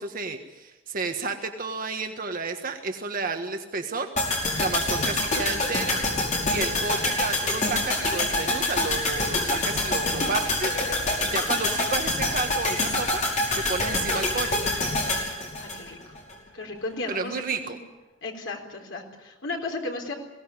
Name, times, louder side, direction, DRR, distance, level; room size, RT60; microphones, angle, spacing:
voice 1, 0.0-6.0 6.5-14.6 17.1-17.8, right 4 dB, 45° right, 5 dB, 1.5 m, -32 dB
sound 1, 4.2-16.3 16.6-16.7, left 2 dB, 40° left, 5.5 m, -26 dB
voice 2, 15.6-16.2 16.5-17.8 18.2-20.1, left 2 dB, 70° left, 2 dB, 3.9 m, -34 dB
22.0 x 17.5 x 9.8 m, 1.1 s
head